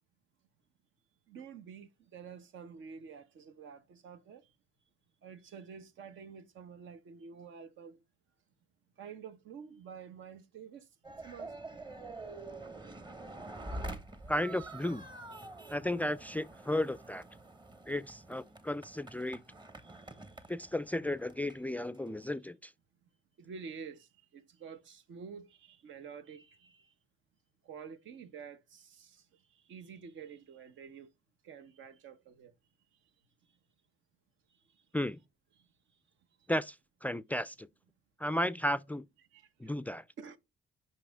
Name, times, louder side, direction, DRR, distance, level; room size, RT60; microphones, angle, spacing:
voice 1, 1.3-4.5 5.2-8.0 9.0-10.9 11.2-11.5 19.8-20.5 23.4-26.9 27.6-31.1 31.4-32.5 34.5-34.8 35.6-35.7 39.3-39.7 40.2-40.4, right 6 dB, 75° right, 1.0 m, -49 dB
sound 1, 11.0-22.3, right 2 dB, 20° right, 1.1 m, -47 dB
voice 2, 14.3-15.1 15.7-17.2 17.9-19.4 20.5-22.7 34.9-35.2 36.5-36.8 37.0-37.7 38.2-39.0 39.6-40.0, left 1 dB, 10° left, 0.3 m, -34 dB
5.8 x 5.5 x 3.5 m
cardioid pair, 90°, 20 cm